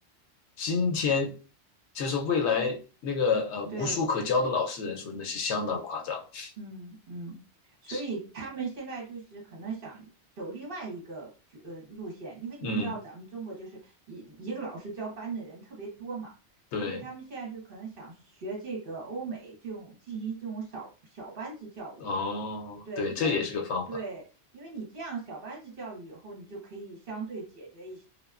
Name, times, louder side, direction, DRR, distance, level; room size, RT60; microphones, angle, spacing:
voice 1, 0.6-1.3 1.9-6.5 7.9-8.0 12.6-13.0 16.7-17.0 22.0-23.9, left 4 dB, 85° left, 3 dB, 0.9 m, -29 dB
voice 2, 6.6-7.3 7.8-10.1 10.4-16.3 16.8-22.1 22.8-23.4 23.9-24.2 24.5-28.0, right 4 dB, 55° right, -2 dB, 1.2 m, -39 dB
2.9 x 2.2 x 2.3 m, 0.35 s
omnidirectional pair, 1.2 m